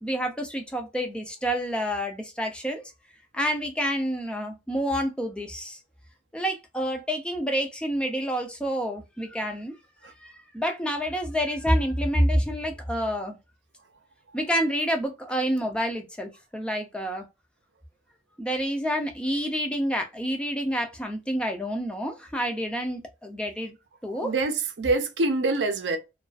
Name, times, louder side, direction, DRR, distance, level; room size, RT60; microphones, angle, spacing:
voice 1, 0.0-2.8 3.3-5.8 6.3-9.7 10.2-13.4 14.3-17.2 18.4-23.7 24.0-24.3, equal, 5° left, 0.4 m, -28 dB
voice 2, 24.1-26.0, right 3 dB, 80° right, 0.6 m, -25 dB
2.3 x 2.3 x 2.3 m
head